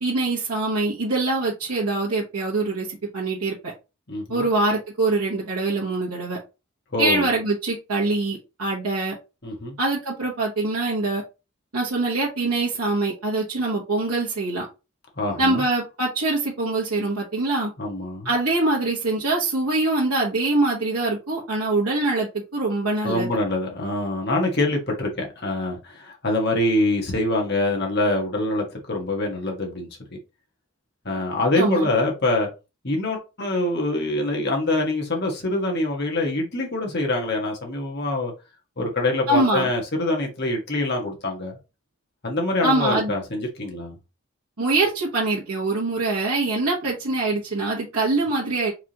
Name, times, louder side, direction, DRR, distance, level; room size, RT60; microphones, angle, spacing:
voice 1, 0.0-3.5 4.3-6.4 7.0-9.1 9.8-11.2 11.7-14.7 15.4-17.7 18.2-23.3 31.6-31.9 39.3-39.7 42.6-43.1 44.6-48.7, right 2 dB, 90° right, 1.5 m, -24 dB
voice 2, 4.1-4.5 6.9-7.2 9.4-9.7 15.2-15.6 17.8-18.3 23.0-29.9 31.0-32.5 32.8-38.3 38.8-41.6 42.2-44.0, left 2 dB, 45° left, 1.6 m, -25 dB
4.7 x 3.6 x 3.0 m
head